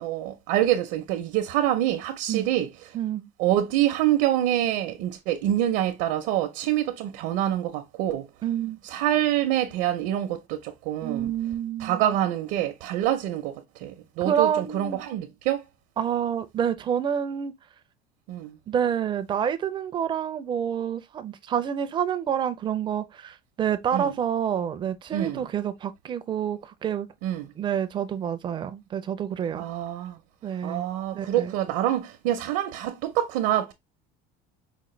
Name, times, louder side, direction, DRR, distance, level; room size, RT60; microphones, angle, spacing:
voice 1, 0.0-2.7 3.4-8.3 8.9-11.3 11.8-15.6 18.3-18.6 23.9-24.1 25.1-25.4 27.2-27.5 29.6-30.2 30.6-33.7, right 12 dB, 65° right, 0.6 m, -26 dB
voice 2, 2.9-3.3 8.4-8.8 11.0-12.1 14.2-15.0 16.0-17.5 18.7-27.1 27.6-29.6 30.4-30.8 31.1-31.5, right 9 dB, 25° right, 0.4 m, -28 dB
5.0 x 2.1 x 3.1 m
cardioid pair, 155°, 20 cm